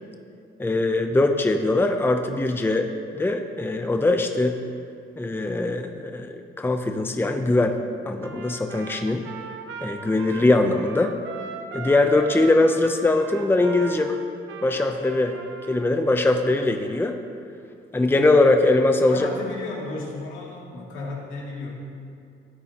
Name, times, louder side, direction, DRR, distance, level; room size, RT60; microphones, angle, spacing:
voice 1, 0.6-4.6 5.2-7.8 8.0-9.2 9.8-11.2 11.7-14.2 14.6-15.4 15.7-17.2 17.9-19.3, left 2 dB, 10° left, 5 dB, 0.7 m, -21 dB
Trumpet, 8.2-16.0, right 5 dB, 85° right, 1.0 m, -39 dB
voice 2, 19.1-21.7, left 3 dB, 75° left, -3 dB, 2.6 m, -34 dB
16.0 x 9.2 x 3.0 m, 2.4 s
cardioid pair, 90°, 20 cm